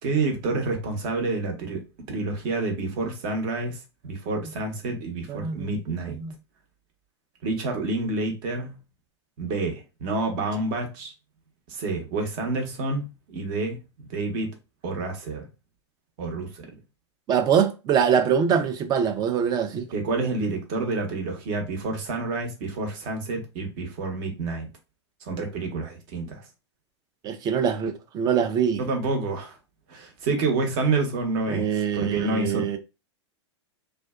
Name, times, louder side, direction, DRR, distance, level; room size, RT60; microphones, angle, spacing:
voice 1, 0.0-6.2 7.4-8.8 9.4-11.1 11.7-13.8 14.1-14.6 14.8-15.5 16.2-16.7 19.9-24.7 25.2-26.4 28.8-29.6 29.9-32.8, right 3 dB, 50° right, 0.9 m, -28 dB
voice 2, 5.3-6.3 17.3-19.9 27.2-28.8 31.5-32.8, right 7 dB, 25° right, 0.4 m, -24 dB
2.4 x 2.2 x 2.3 m
hypercardioid pair, 115°, 15 cm